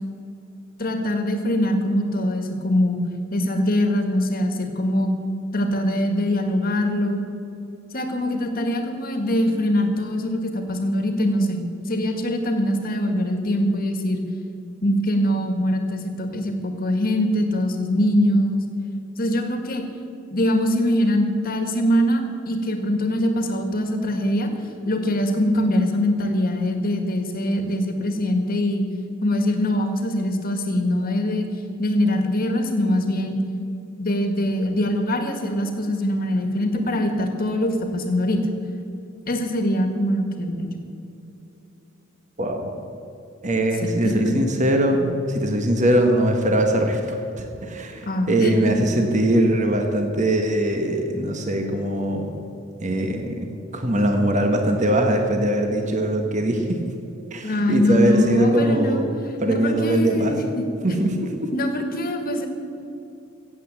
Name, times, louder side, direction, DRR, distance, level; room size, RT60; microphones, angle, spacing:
voice 1, 0.8-3.0 3.3-5.1 5.5-7.2 7.9-14.2 14.8-18.6 19.2-19.8 20.3-24.5 24.9-28.9 29.2-31.5 31.8-33.4 34.0-38.4 39.3-40.7 43.8-44.3 48.0-49.0 57.4-59.0 59.5-60.6 61.5-62.5, left 1 dB, 45° left, 6 dB, 1.7 m, -23 dB
voice 2, 42.4-42.7 43.4-47.2 47.6-52.4 52.8-56.8 57.3-59.1 59.4-60.4 60.8-61.5, right 1 dB, 35° right, 4 dB, 1.3 m, -21 dB
15.5 x 8.2 x 7.7 m, 2.7 s
head